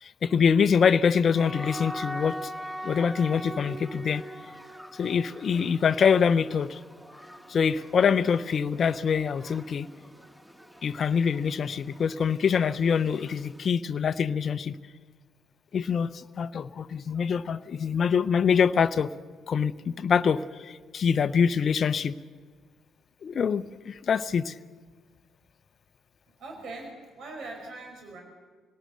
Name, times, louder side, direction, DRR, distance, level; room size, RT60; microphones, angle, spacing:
voice 1, 0.0-2.5 2.8-4.2 5.0-6.8 7.5-9.9 10.8-14.8 15.7-19.1 19.5-22.2 23.2-24.5, left 6 dB, 50° left, 13 dB, 0.7 m, -25 dB
sound 1, 1.4-13.7, equal, 5° right, 2.1 m, -42 dB
voice 2, 26.4-28.2, right 2 dB, 65° right, 2 dB, 5.1 m, -41 dB
26.0 x 18.5 x 6.6 m, 1.5 s
hypercardioid pair, 45°, 0 cm